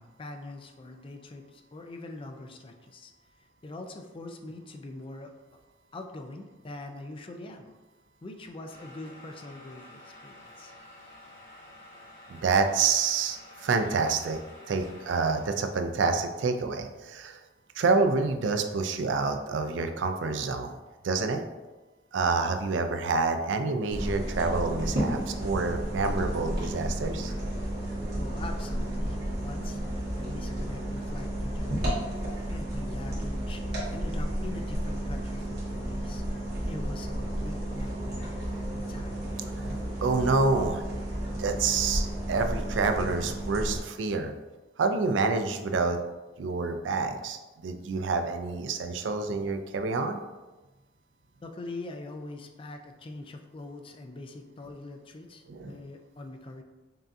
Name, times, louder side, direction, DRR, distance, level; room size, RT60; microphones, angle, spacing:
voice 1, 0.0-3.1 3.6-5.3 5.9-7.7 8.2-10.7 28.2-29.8 30.2-32.0 32.5-33.6 33.9-39.2 51.4-56.6, left 2 dB, 30° left, 5 dB, 0.4 m, -43 dB
sound 1, 8.7-15.7, left 1 dB, 80° left, 1.2 m, -50 dB
voice 2, 12.3-14.4 14.7-17.4 17.8-20.7 21.0-21.4 22.1-27.3 40.0-40.8 41.4-44.3 44.8-46.0 46.4-50.2 55.5-55.8, right 4 dB, 75° right, 6 dB, 0.4 m, -27 dB
sound 2, 23.9-43.8, right 1 dB, 55° right, 1.5 m, -32 dB
5.4 x 2.6 x 2.6 m, 1.1 s
head